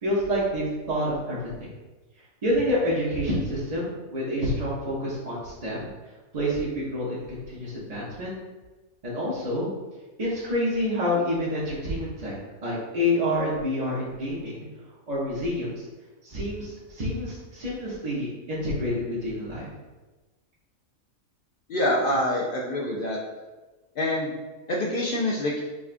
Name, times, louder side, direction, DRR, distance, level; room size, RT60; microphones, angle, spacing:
voice 1, 0.0-1.5 2.4-5.9 6.3-8.3 9.0-9.7 10.2-12.3 12.6-14.7 15.1-15.8 16.2-19.7, left 1 dB, 40° right, -8 dB, 0.7 m, -28 dB
voice 2, 21.7-23.2 24.0-24.3 24.7-25.6, left 1 dB, 65° left, -3 dB, 0.5 m, -26 dB
4.9 x 2.3 x 2.5 m, 1.2 s
omnidirectional pair, 1.4 m